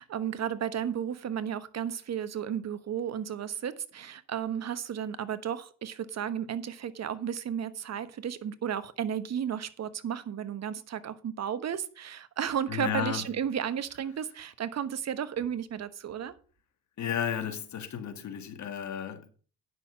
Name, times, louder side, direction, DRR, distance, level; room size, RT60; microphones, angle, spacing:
voice 1, 0.0-16.3, right 9 dB, 55° right, 1.2 m, -33 dB
voice 2, 12.7-13.3 17.0-19.3, left 9 dB, 60° left, 1.8 m, -33 dB
9.6 x 6.4 x 6.2 m
supercardioid pair, 60°, 32 cm